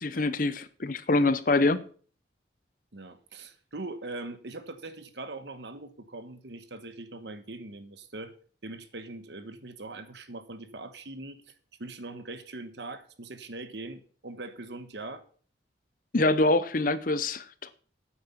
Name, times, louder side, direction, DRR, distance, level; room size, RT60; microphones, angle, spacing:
voice 1, 0.0-1.8 16.1-17.7, left 2 dB, 45° left, 0.7 m, -25 dB
voice 2, 2.9-8.3 8.6-11.5 11.8-15.2, right 2 dB, 65° right, 1.2 m, -41 dB
8.9 x 8.6 x 5.7 m
head